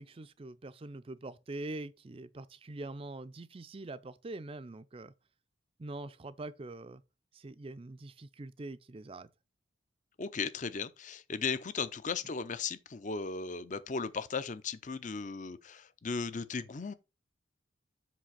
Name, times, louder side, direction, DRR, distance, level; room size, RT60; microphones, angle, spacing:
voice 1, 0.0-5.1 5.8-7.0 7.3-9.3, right 2 dB, 30° right, 0.4 m, -44 dB
voice 2, 10.2-16.9, left 5 dB, 40° left, 0.5 m, -36 dB
7.6 x 3.3 x 6.3 m
head